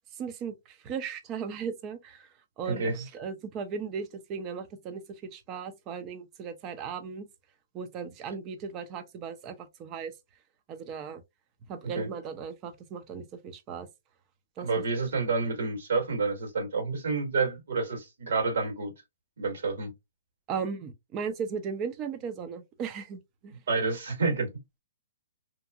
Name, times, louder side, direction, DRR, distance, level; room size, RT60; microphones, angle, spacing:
voice 1, 0.1-7.3 7.7-10.1 10.7-11.2 11.7-13.9 14.6-14.7 20.5-23.6, right 6 dB, 25° right, 0.5 m, -37 dB
voice 2, 2.6-3.0 11.8-12.1 14.6-18.9 19.4-19.9 23.7-24.5, right 4 dB, 70° right, 1.7 m, -29 dB
2.8 x 2.5 x 2.4 m
hypercardioid pair, 140°, 0 cm